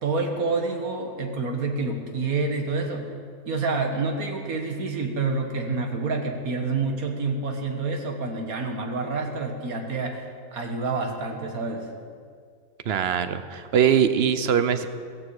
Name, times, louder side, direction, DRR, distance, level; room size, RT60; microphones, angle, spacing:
voice 1, 0.0-3.1 3.5-11.9, right 3 dB, 85° right, 3 dB, 2.0 m, -28 dB
voice 2, 12.9-14.9, right 8 dB, 55° right, 11 dB, 0.9 m, -22 dB
16.0 x 15.5 x 4.8 m, 2.1 s
omnidirectional pair, 1.5 m